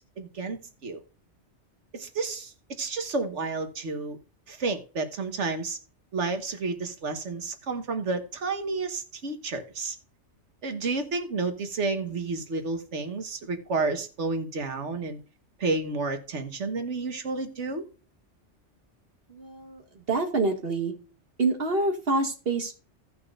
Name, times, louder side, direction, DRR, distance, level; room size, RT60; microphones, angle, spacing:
voice 1, 0.2-1.0 1.9-4.2 4.5-5.8 6.1-10.0 10.6-15.2 15.6-17.8, right 3 dB, 80° right, 7 dB, 1.6 m, -31 dB
voice 2, 19.3-20.9 21.4-22.7, right 3 dB, 55° right, 2 dB, 2.0 m, -27 dB
16.5 x 5.7 x 2.5 m, 0.37 s
omnidirectional pair, 1.2 m